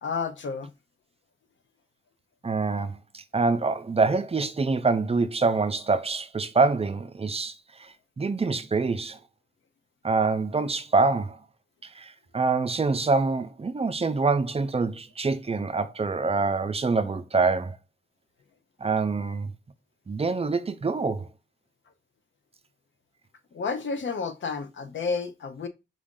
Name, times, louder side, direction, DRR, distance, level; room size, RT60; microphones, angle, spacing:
voice 1, 0.0-0.7 23.5-25.7, left 5 dB, 85° left, 0.6 m, -31 dB
voice 2, 2.4-9.2 10.0-11.4 11.8-17.8 18.8-19.5 20.1-21.3, right 4 dB, 30° right, 0.5 m, -25 dB
4.9 x 2.5 x 3.7 m
wide cardioid pair, 80°, 19 cm